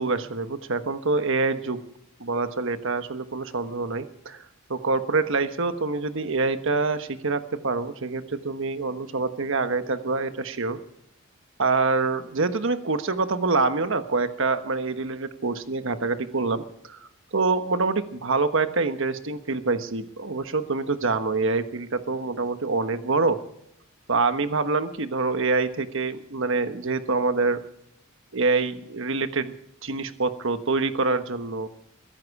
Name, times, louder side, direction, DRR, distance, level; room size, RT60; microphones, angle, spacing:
voice 1, 0.0-1.8 2.2-4.4 4.7-10.8 11.6-17.0 17.3-23.4 24.1-27.6 28.3-29.5 29.8-31.7, right 3 dB, 65° right, 9 dB, 1.2 m, -26 dB
22.5 x 10.5 x 4.8 m, 0.77 s
head